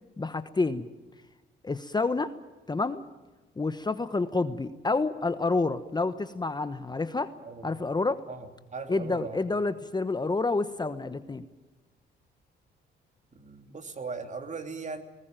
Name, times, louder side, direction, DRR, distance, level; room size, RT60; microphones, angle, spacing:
voice 1, 0.2-0.9 1.6-2.3 2.7-3.0 3.6-7.3 7.6-8.2 8.9-11.4, left 3 dB, 20° left, 11 dB, 1.1 m, -28 dB
voice 2, 8.3-9.4 13.3-15.0, right 4 dB, 40° right, 6 dB, 3.0 m, -39 dB
20.0 x 19.5 x 9.1 m, 1.2 s
cardioid pair, 90°, 20 cm